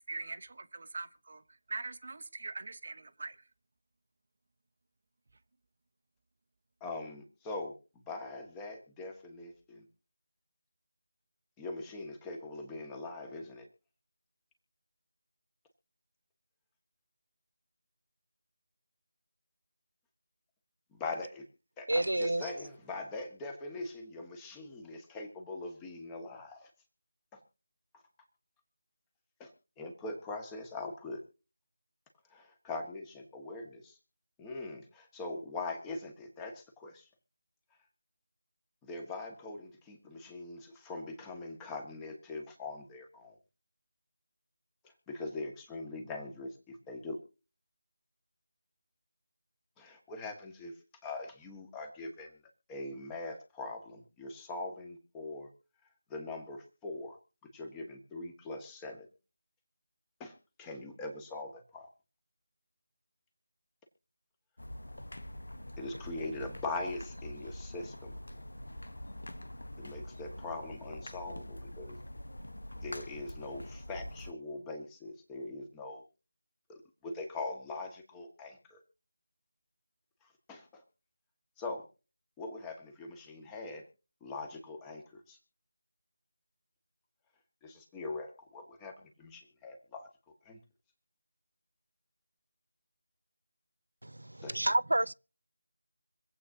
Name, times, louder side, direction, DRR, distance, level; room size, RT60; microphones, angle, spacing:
voice 1, 0.1-1.4 1.7-3.3, right 3 dB, 50° right, 1.1 m, -42 dB
voice 2, 6.8-7.7 8.1-9.9 11.6-13.7 21.0-21.4 21.8-26.7 27.3-27.4 29.4-29.5 29.8-31.2 32.3-34.0 34.4-37.1 38.8-43.4 44.8-47.2 49.8-50.7 51.0-52.3 52.7-55.5 56.1-57.2 57.5-59.1 60.2-61.9 65.8-68.2 69.8-72.0 72.8-76.0 76.7-78.8 80.5-80.8 81.6-81.9 82.4-83.8 84.2-85.4 87.6-90.1 90.5-90.6 94.4-94.5, left 2 dB, 10° left, 1.8 m, -42 dB
voice 3, 21.9-22.5 94.0-95.1, right 1 dB, 80° right, 0.5 m, -30 dB
sound 1, 64.6-74.3, left 1 dB, 75° left, 1.2 m, -45 dB
25.5 x 8.5 x 2.8 m
figure-of-eight pair, 165°, 0 cm